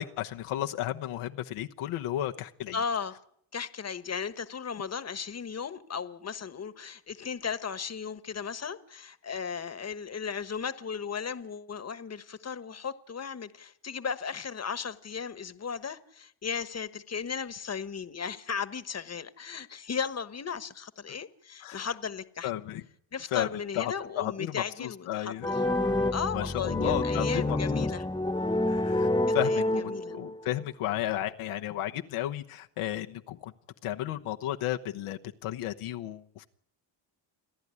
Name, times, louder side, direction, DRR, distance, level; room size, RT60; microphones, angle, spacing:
voice 1, 0.0-2.8 21.6-21.9 22.4-22.8 23.3-23.5 23.7-25.5 26.3-27.9 28.7-33.5 33.8-36.4, left 13 dB, 85° left, 1.1 m, -33 dB
voice 2, 2.7-3.2 3.5-22.5 23.1-25.6 26.1-28.1 29.4-30.1, left 6 dB, 30° left, 1.3 m, -36 dB
sound 1, 25.4-30.4, left 2 dB, 10° left, 1.3 m, -28 dB
29.0 x 10.5 x 9.8 m
cardioid pair, 75°, 49 cm